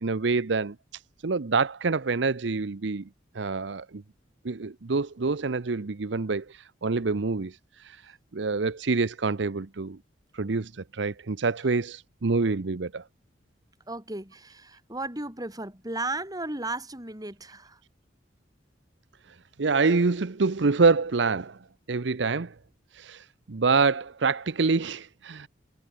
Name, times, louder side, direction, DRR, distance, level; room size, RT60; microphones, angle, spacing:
voice 1, 0.0-0.8 1.2-3.1 3.3-4.0 4.4-10.0 10.3-13.0 19.6-21.6 21.9-22.5 22.9-25.5, right 4 dB, 65° right, 0.7 m, -26 dB
voice 2, 13.9-17.8, right 2 dB, 20° right, 6.1 m, -35 dB
head